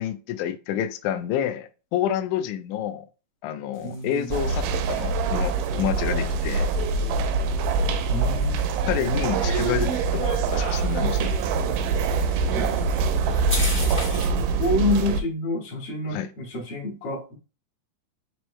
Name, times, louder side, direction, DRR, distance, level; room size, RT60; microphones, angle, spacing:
voice 1, 0.0-3.0 3.4-6.7 8.9-11.3 16.1-16.3, left 10 dB, 85° left, 1.8 m, -28 dB
sound 1, 3.7-14.4, equal, 5° right, 0.6 m, -40 dB
voice 2, 3.8-4.3 8.1-8.6 12.5-12.7 13.4-13.5 14.6-17.3, left 2 dB, 55° left, 1.9 m, -28 dB
sound 2, 4.3-15.2, right 4 dB, 80° right, 2.0 m, -24 dB
5.4 x 3.0 x 3.1 m
omnidirectional pair, 4.0 m